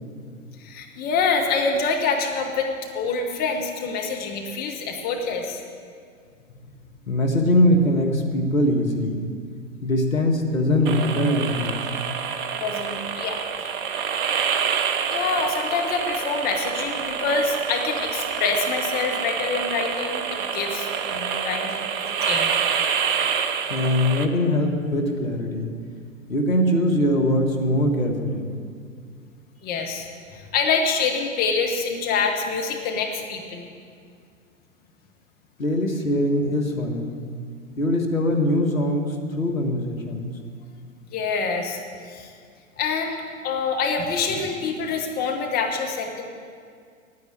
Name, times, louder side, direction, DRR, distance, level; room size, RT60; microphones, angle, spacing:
voice 1, 0.6-5.6 12.6-13.4 13.8-13.9 15.1-21.7 22.0-22.5 29.6-33.7 41.1-41.8 42.0-42.3 42.8-46.2, left 4 dB, 20° left, 2 dB, 1.2 m, -26 dB
voice 2, 7.1-9.3 9.8-11.8 23.7-25.7 26.3-28.5 35.6-37.2 37.8-40.2, left 1 dB, 75° left, 3 dB, 1.6 m, -22 dB
sound 1, 10.9-24.3, right 7 dB, 40° right, 0.7 m, -27 dB
9.8 x 9.5 x 8.6 m, 2.2 s
figure-of-eight pair, 105°, 41 cm